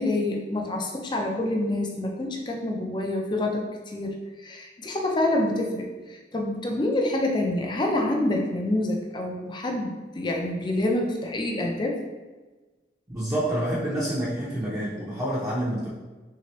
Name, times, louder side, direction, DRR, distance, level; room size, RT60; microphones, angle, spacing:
voice 1, 0.0-12.0, left 1 dB, 25° left, 1 dB, 0.4 m, -27 dB
voice 2, 13.1-15.9, right 1 dB, 15° right, -9 dB, 0.6 m, -28 dB
3.3 x 2.8 x 3.0 m, 1.2 s
head